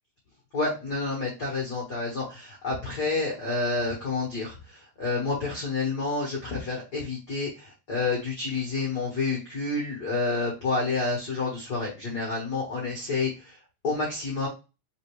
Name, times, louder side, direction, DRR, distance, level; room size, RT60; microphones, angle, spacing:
voice 1, 0.5-13.6 13.8-14.5, left 3 dB, 80° left, -3 dB, 0.9 m, -29 dB
4.3 x 4.0 x 3.0 m, 0.29 s
omnidirectional pair, 4.0 m